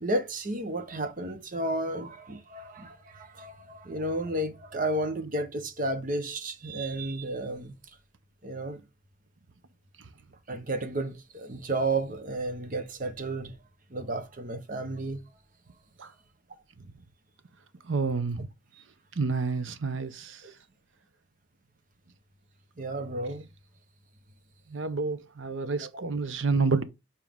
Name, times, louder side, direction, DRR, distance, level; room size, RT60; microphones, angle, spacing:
voice 1, 0.0-7.7 8.4-8.8 10.5-13.5 13.9-15.2 20.4-20.5 22.8-23.5 25.8-26.0, right 2 dB, 40° right, 0.9 m, -32 dB
voice 2, 17.9-18.5 19.2-20.4 24.7-26.8, right 4 dB, 70° right, 0.7 m, -29 dB
7.1 x 4.5 x 3.6 m
head